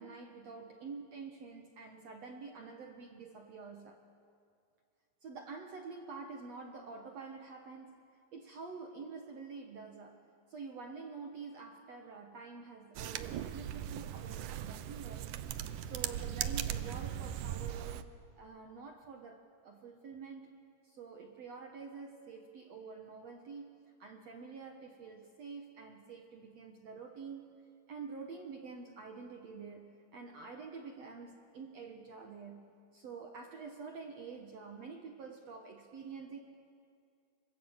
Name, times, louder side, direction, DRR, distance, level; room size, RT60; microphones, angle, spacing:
voice 1, 0.0-4.0 5.2-8.0 8.3-10.2 10.5-15.3 15.8-20.6 20.8-27.5 27.9-32.7 32.9-36.4, right 5 dB, 60° right, 3 dB, 1.8 m, -47 dB
sound 1, 13.0-18.0, right 11 dB, 80° right, 1.8 m, -39 dB
26.5 x 25.5 x 8.0 m, 2.4 s
omnidirectional pair, 4.7 m